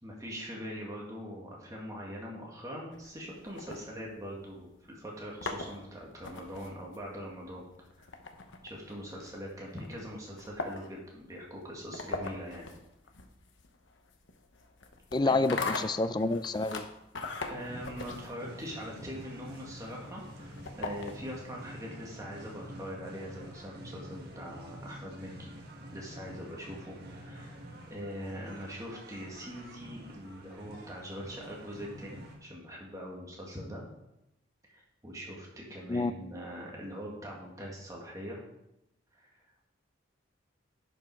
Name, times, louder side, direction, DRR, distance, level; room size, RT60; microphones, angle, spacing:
voice 1, 0.0-7.7 8.0-8.1 8.6-12.7 15.2-15.4 17.5-25.5 25.9-27.6 27.9-33.8 34.7-38.4 39.1-39.3, equal, 15° right, -3 dB, 1.7 m, -42 dB
sound 1, 2.9-4.5 5.2-21.5, left 3 dB, 70° left, 0.9 m, -42 dB
voice 2, 15.1-16.9 35.9-36.1, left 2 dB, 20° left, 13 dB, 0.3 m, -28 dB
sound 2, 17.6-32.4, equal, 55° right, 1.7 m, -48 dB
11.0 x 5.5 x 4.6 m, 0.87 s
head